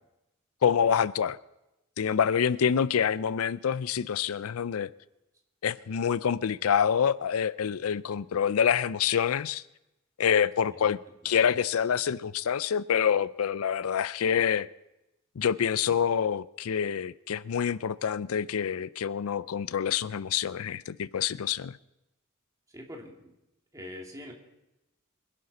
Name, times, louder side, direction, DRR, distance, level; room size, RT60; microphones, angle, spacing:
voice 1, 0.6-1.4 2.0-4.9 5.6-9.6 10.2-11.0 11.2-14.7 15.4-21.8, left 8 dB, 85° left, 0.4 m, -26 dB
voice 2, 22.7-23.3 23.7-24.3, left 1 dB, 15° right, 2.6 m, -43 dB
25.0 x 11.5 x 4.2 m
head